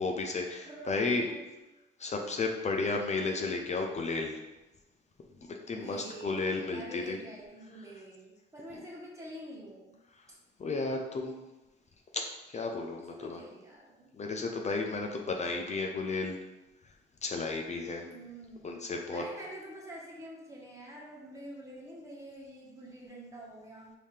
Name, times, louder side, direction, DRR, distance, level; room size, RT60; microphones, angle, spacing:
voice 1, 0.0-1.3 2.0-4.4 5.5-7.2 10.6-11.5 12.1-12.2 12.5-13.4 14.2-16.4 17.2-18.0 18.6-19.2, left 3 dB, 35° left, 2 dB, 0.5 m, -33 dB
voice 2, 0.7-1.5 5.7-9.9 10.3-10.4 12.9-14.1 18.0-18.8 19.1-23.9, right 1 dB, 15° right, -4 dB, 1.3 m, -47 dB
5.4 x 2.8 x 3.3 m, 1.0 s
cardioid pair, 90°, 20 cm